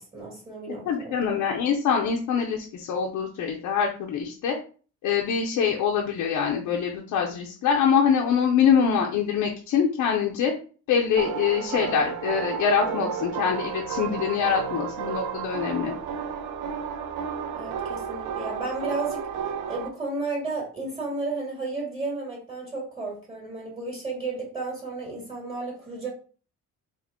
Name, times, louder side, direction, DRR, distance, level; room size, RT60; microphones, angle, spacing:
voice 1, 0.0-1.4 17.5-19.2 19.7-26.1, right 3 dB, 15° right, -5 dB, 1.8 m, -33 dB
voice 2, 0.9-4.6 5.0-10.5 10.9-15.9, left 7 dB, 80° left, 0 dB, 0.7 m, -24 dB
sound 1, 11.2-19.9, right 7 dB, 85° right, 0.5 m, -32 dB
3.7 x 2.3 x 3.6 m, 0.39 s
cardioid pair, 90°, 30 cm